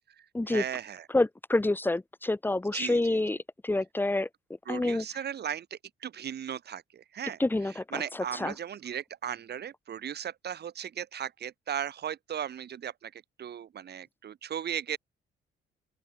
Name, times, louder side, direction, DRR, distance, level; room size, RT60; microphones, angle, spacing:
voice 1, 0.5-1.1 2.7-3.0 4.7-7.4 7.9-15.0, right 9 dB, 55° right, 2.0 m, -37 dB
voice 2, 1.1-3.4 3.6-4.3 4.7-5.1 7.4-8.5, left 2 dB, 10° left, 1.0 m, -28 dB
open air
cardioid pair, 90°, 20 cm